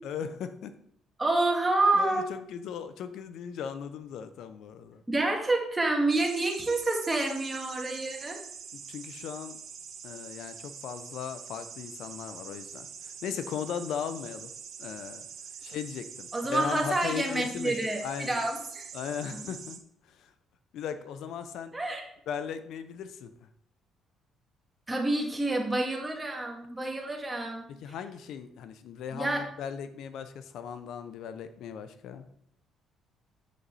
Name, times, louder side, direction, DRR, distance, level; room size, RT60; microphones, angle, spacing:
voice 1, 0.0-0.7 1.9-2.2 2.5-5.0 8.7-9.6 10.0-14.5 14.8-15.3 15.6-18.4 18.9-19.8 20.2-20.3 20.7-21.7 22.3-23.5 27.7-32.3, left 8 dB, 75° left, 11 dB, 0.7 m, -38 dB
voice 2, 1.2-2.3 5.1-8.4 16.3-18.9 19.3-19.4 21.7-22.1 24.9-27.6 29.1-29.5, right 2 dB, 15° right, 1 dB, 2.2 m, -28 dB
sound 1, 6.1-19.8, right 7 dB, 60° right, 1.3 m, -44 dB
8.5 x 7.4 x 4.1 m, 0.70 s
cardioid pair, 100°, 0 cm